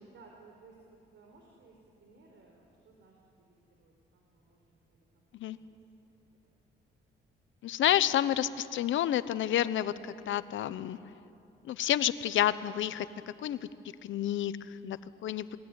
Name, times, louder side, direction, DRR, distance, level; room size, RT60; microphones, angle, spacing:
voice 1, 0.1-5.0 5.5-5.7 6.4-6.5, right 4 dB, 70° right, 1 dB, 4.4 m, -59 dB
voice 2, 7.6-11.0 11.6-13.1 13.4-13.6 14.0-15.0 15.2-15.5, left 12 dB, 75° left, 14 dB, 1.1 m, -29 dB
28.5 x 20.0 x 9.7 m, 2.7 s
cardioid pair, 90°, 20 cm